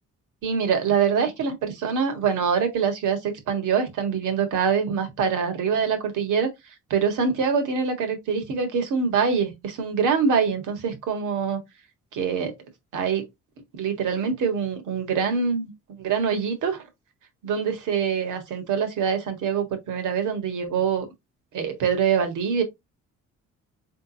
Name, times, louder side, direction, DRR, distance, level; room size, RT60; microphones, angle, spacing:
voice 1, 0.4-6.5 6.9-11.6 12.1-12.5 12.9-13.2 13.7-15.7 16.0-16.8 17.4-21.1 21.5-22.6, right 6 dB, 80° right, 1.6 m, -24 dB
3.9 x 3.6 x 2.8 m
cardioid pair, 90°, 30 cm